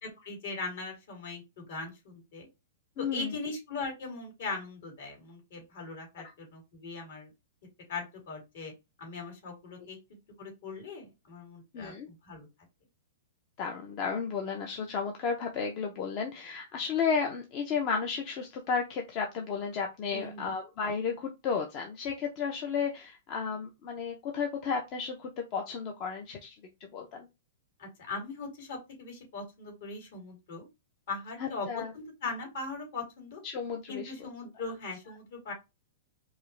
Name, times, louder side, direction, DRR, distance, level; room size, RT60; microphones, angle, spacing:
voice 1, 0.0-2.5 3.0-7.3 7.9-8.7 9.0-10.0 10.4-12.5 20.1-20.5 27.8-30.7 31.1-31.7 31.9-33.4 33.9-35.5, left 3 dB, 60° left, 1 dB, 2.5 m, -40 dB
voice 2, 3.0-3.3 6.2-6.3 11.7-12.1 13.6-27.3 31.4-31.9 33.4-34.1, left 6 dB, 30° left, 3 dB, 0.5 m, -33 dB
4.7 x 2.1 x 3.2 m, 0.24 s
hypercardioid pair, 165°, 0 cm